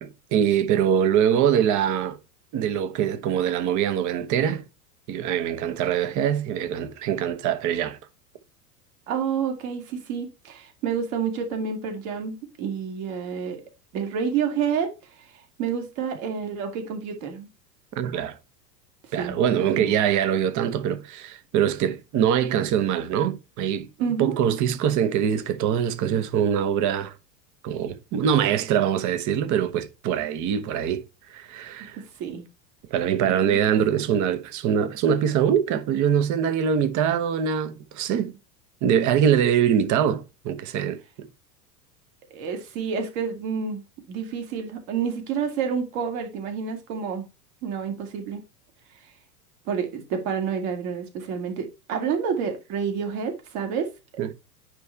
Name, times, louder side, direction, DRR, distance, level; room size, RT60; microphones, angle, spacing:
voice 1, 0.0-2.2 2.5-4.6 5.1-8.0 17.9-18.4 19.1-23.9 24.2-27.1 27.6-31.0 31.3-32.0 32.9-38.3 38.8-41.3 54.2-54.3, right 9 dB, 35° right, 1.1 m, -23 dB
voice 2, 9.1-13.6 13.9-14.9 15.6-17.5 19.1-20.0 24.0-24.4 32.0-32.4 33.2-33.8 42.3-43.8 44.1-47.2 47.6-48.4 49.7-53.9, right 6 dB, 55° right, 2.6 m, -29 dB
9.5 x 3.3 x 4.6 m
hypercardioid pair, 90°, 49 cm